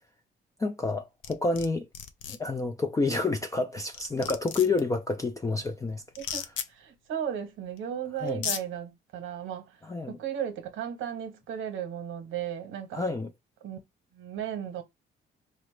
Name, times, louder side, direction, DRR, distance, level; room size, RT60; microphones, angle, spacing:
voice 1, 0.6-1.9 2.3-6.0 8.2-8.4 9.9-10.2 12.9-13.3, left 3 dB, 15° left, 0.3 m, -29 dB
sound 1, 1.2-1.7 1.9-2.4 3.6-3.7 3.9-4.8 6.2-6.7 7.8-7.9 8.3-8.6, left 8 dB, 75° left, 0.5 m, -34 dB
voice 2, 6.2-9.8 10.1-13.0 13.6-13.8 14.1-14.8, right 9 dB, 80° right, 0.8 m, -35 dB
3.8 x 2.0 x 3.1 m
cardioid pair, 90°, 20 cm